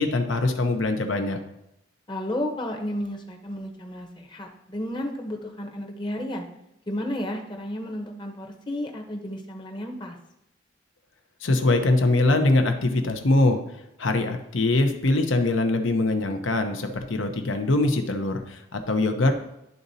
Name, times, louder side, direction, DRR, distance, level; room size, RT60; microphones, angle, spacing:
voice 1, 0.0-1.4 11.4-13.6 14.0-19.4, left 2 dB, 80° left, 6 dB, 0.8 m, -23 dB
voice 2, 2.1-6.4 6.9-10.2, left 1 dB, 25° left, 2 dB, 0.8 m, -32 dB
11.5 x 4.0 x 2.7 m, 0.85 s
head